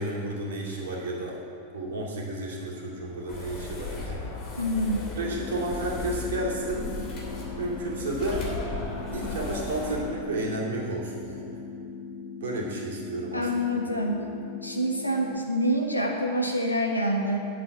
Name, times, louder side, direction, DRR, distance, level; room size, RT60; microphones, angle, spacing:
voice 1, 0.0-1.4 1.7-4.3 5.2-6.9 7.6-8.5 9.1-11.5 12.4-13.5 13.9-14.2, right 2 dB, 60° right, -2 dB, 2.6 m, -32 dB
sound 1, 3.3-10.1, left 3 dB, 35° left, 2.9 m, -36 dB
voice 2, 4.6-5.1 13.3-14.3 14.6-17.5, equal, 85° left, 1 dB, 1.4 m, -26 dB
sound 2, 5.4-15.4, left 5 dB, 5° left, 1.9 m, -40 dB
9.4 x 7.5 x 8.4 m, 2.6 s
figure-of-eight pair, 90°, 0 cm